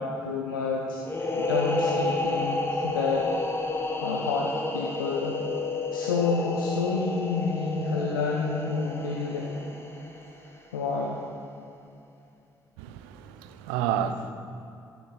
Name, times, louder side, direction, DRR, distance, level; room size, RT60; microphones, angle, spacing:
voice 1, 0.0-3.3 4.0-5.4 5.9-9.5 10.7-11.2, left 4 dB, 85° left, 0.6 m, -29 dB
sound 1, 1.0-10.6, left 2 dB, 20° left, 1.3 m, -31 dB
voice 2, 12.8-14.3, right 9 dB, 80° right, 0.5 m, -30 dB
12.0 x 6.3 x 5.2 m
hypercardioid pair, 40°, 11 cm